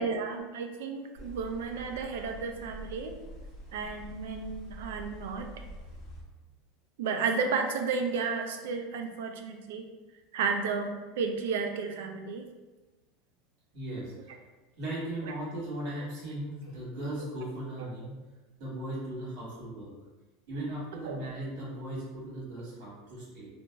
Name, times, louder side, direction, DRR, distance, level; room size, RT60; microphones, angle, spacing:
voice 1, 0.0-3.2 3.7-5.5 7.0-9.9 10.3-12.5 15.2-15.3 17.2-17.3 21.0-21.2, right 5 dB, 75° right, 5 dB, 0.4 m, -32 dB
sound 1, 1.1-6.2, equal, 45° left, 0.8 m, -46 dB
voice 2, 13.7-14.3 14.8-18.2 18.6-19.9 20.5-23.5, right 1 dB, 50° right, -7 dB, 1.5 m, -37 dB
2.9 x 2.5 x 2.3 m, 1.2 s
supercardioid pair, 175°, 0 cm